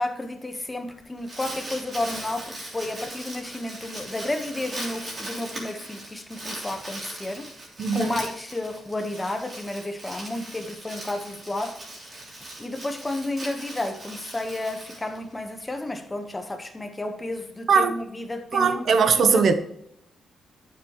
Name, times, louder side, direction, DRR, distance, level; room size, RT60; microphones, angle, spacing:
voice 1, 0.0-7.5 7.9-11.8 12.6-18.8 19.3-19.4, left 2 dB, 10° left, 6 dB, 1.1 m, -32 dB
Crumpling crinkling, 1.0-15.6, right 1 dB, 30° right, 3.1 m, -39 dB
voice 2, 7.8-8.1 17.7-17.9 18.5-19.5, right 5 dB, 45° right, 9 dB, 0.9 m, -19 dB
12.0 x 7.2 x 3.0 m, 0.77 s
wide cardioid pair, 180°, 0 cm